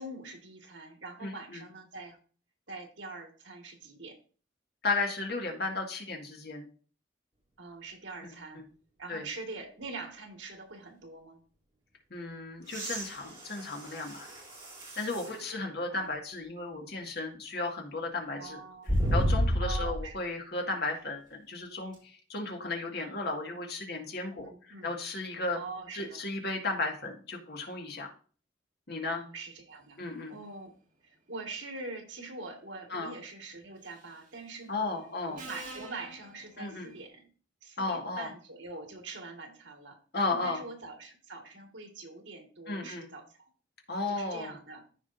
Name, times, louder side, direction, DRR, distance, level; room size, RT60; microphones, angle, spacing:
voice 1, 0.0-2.2 2.7-4.2 7.6-8.6 9.0-11.4 15.1-16.1 18.3-19.0 19.6-20.2 24.4-24.9 25.5-26.2 29.1-30.0 30.3-30.7 31.0-34.9 35.3-37.3 37.6-43.5 44.1-44.8, right 3 dB, 80° right, 3 dB, 1.9 m, -44 dB
voice 2, 1.2-1.6 4.8-6.7 8.2-8.6 9.1-9.3 12.1-14.3 15.0-18.6 19.1-24.5 24.8-25.6 25.9-28.1 28.9-29.2 30.0-30.3 32.9-33.1 34.7-35.4 36.6-36.9 37.8-38.3 40.1-40.6 42.7-43.1 43.9-44.5, left 3 dB, 60° left, 2 dB, 1.9 m, -34 dB
sound 1, 12.6-15.4 16.1-16.2 18.9-20.1 21.9-22.0, equal, 25° right, 4.5 m, -31 dB
Subway metro underground, 33.9-34.2 35.4-37.1, right 1 dB, 45° right, 2.1 m, -46 dB
14.5 x 5.0 x 2.6 m, 0.41 s
head